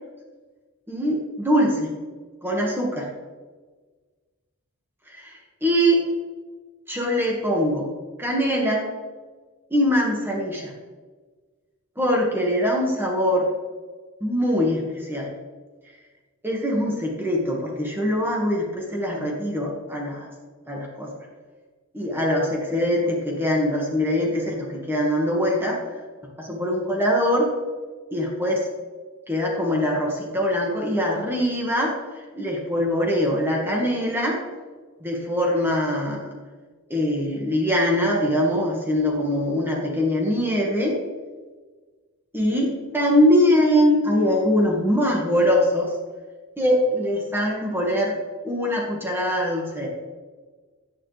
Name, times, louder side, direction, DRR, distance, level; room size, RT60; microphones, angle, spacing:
voice 1, 0.9-1.9 2.4-3.1 5.1-6.0 6.9-7.9 8.2-8.8 9.7-10.7 12.0-13.5 14.2-15.3 16.4-20.3 20.7-21.1 21.9-25.8 26.4-27.5 28.1-28.7 29.3-32.0 32.3-34.4 35.0-36.3 36.9-41.0 42.3-45.9 46.6-48.2 48.4-49.9, equal, 10° right, -2 dB, 1.9 m, -22 dB
16.0 x 8.9 x 3.4 m, 1.4 s
head